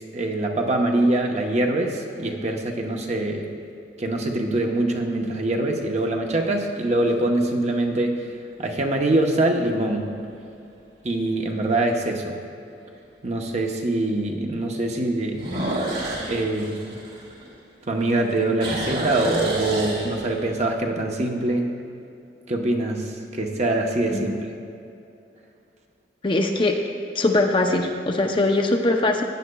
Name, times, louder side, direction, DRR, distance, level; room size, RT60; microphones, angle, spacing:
voice 1, 0.1-3.5 4.0-8.2 8.6-10.1 11.0-12.4 13.2-15.4 16.3-16.8 17.9-21.7 22.5-24.5, right 2 dB, 40° right, 2 dB, 0.9 m, -24 dB
sound 1, 1.9-2.3 3.0-3.1 8.3-8.8 9.3-9.4 9.9-10.0 10.3-10.4 11.9-12.0 15.3-17.9 18.2-20.6, right 1 dB, 60° right, 2.3 m, -30 dB
voice 2, 26.2-26.8 27.1-29.2, left 2 dB, 30° left, 3 dB, 0.6 m, -21 dB
16.0 x 9.8 x 2.3 m, 2.6 s
head